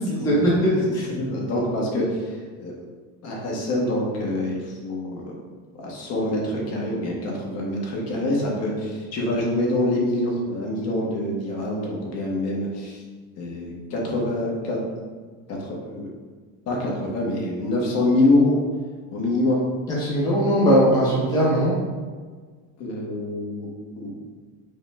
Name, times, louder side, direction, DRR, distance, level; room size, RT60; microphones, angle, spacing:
voice 1, 0.1-1.1 19.9-21.7, equal, 10° left, -7 dB, 0.6 m, -20 dB
voice 2, 1.1-2.7 3.2-5.3 5.8-13.0 13.4-14.8 15.5-16.1 16.7-18.6 19.1-19.6 22.8-23.7 24.0-24.1, left 1 dB, 40° left, -2 dB, 0.9 m, -25 dB
5.1 x 2.1 x 3.3 m, 1.5 s
cardioid pair, 160°, 39 cm